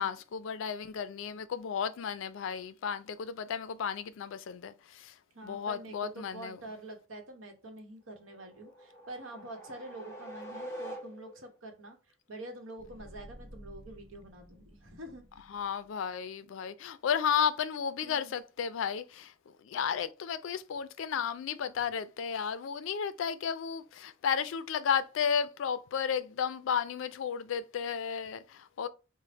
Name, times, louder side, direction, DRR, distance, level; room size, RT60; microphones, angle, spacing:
voice 1, 0.0-5.2 5.4-6.6 15.5-28.9, left 7 dB, 70° left, 0.3 m, -33 dB
voice 2, 5.3-12.0 12.3-15.3 18.0-18.3, right 1 dB, 75° right, 0.9 m, -46 dB
sound 1, 8.3-11.6, right 1 dB, 15° left, 0.8 m, -45 dB
sound 2, 12.8-15.9, equal, 5° right, 0.3 m, -53 dB
3.3 x 2.1 x 3.9 m
head